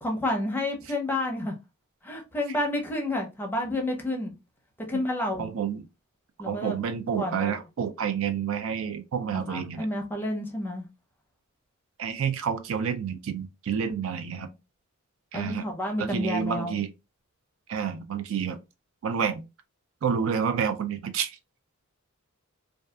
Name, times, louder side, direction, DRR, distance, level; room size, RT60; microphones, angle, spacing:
voice 1, 0.0-1.5 2.0-4.3 4.9-5.5 6.4-6.8 7.2-7.6 9.3-10.9 14.4-14.5 15.3-16.8, left 1 dB, 10° left, 0.6 m, -30 dB
voice 2, 5.4-5.9 6.5-9.9 12.0-14.5 15.3-15.7 16.0-16.9 17.7-18.6 19.0-19.4 20.0-21.4, right 7 dB, 65° right, 0.3 m, -29 dB
2.6 x 2.3 x 2.2 m
head